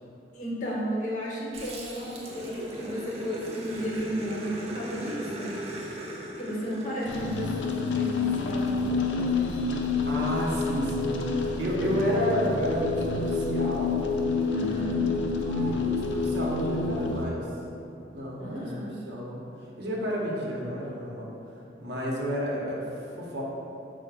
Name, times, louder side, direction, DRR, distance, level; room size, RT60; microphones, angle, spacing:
voice 1, 0.3-5.5 6.4-9.5 14.5-15.0 18.4-19.0, equal, 45° left, -4 dB, 0.8 m, -33 dB
Growling, 1.5-8.2, right 1 dB, 35° right, 0.4 m, -39 dB
sound 1, 7.0-17.3, left 4 dB, 90° left, 0.4 m, -28 dB
voice 2, 10.0-14.0 15.4-17.5 18.1-18.7 19.1-23.4, equal, 70° right, -4 dB, 0.8 m, -31 dB
4.8 x 2.1 x 4.6 m, 2.9 s
head